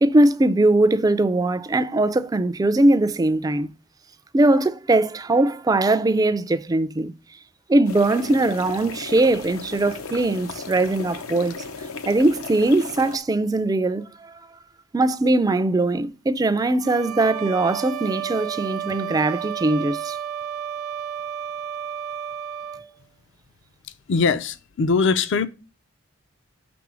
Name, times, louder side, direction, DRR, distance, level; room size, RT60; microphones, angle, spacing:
voice 1, 0.0-3.7 4.3-7.1 7.7-11.6 12.1-14.4 14.9-20.2, right 2 dB, 15° right, 0.3 m, -20 dB
sound 1, 7.9-13.2, left 4 dB, 90° left, 0.8 m, -36 dB
sound 2, 16.8-22.9, right 9 dB, 90° right, 0.7 m, -32 dB
voice 2, 24.1-25.5, left 4 dB, 55° left, 0.4 m, -21 dB
6.1 x 3.6 x 6.0 m
head